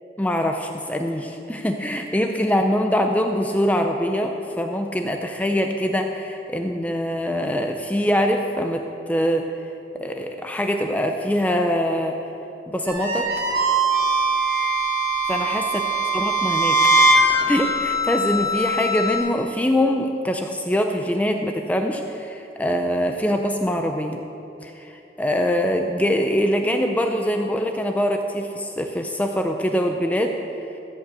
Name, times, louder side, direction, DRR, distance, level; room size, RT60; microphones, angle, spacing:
voice 1, 0.2-9.5 9.9-12.2 12.7-13.3 15.3-15.6 16.1-16.8 17.5-24.2 24.6-24.9 25.2-30.3, equal, 10° left, 4 dB, 0.4 m, -23 dB
sound 1, 12.9-19.2, right 2 dB, 60° right, 2.8 m, -21 dB
14.5 x 5.3 x 8.1 m, 2.9 s
head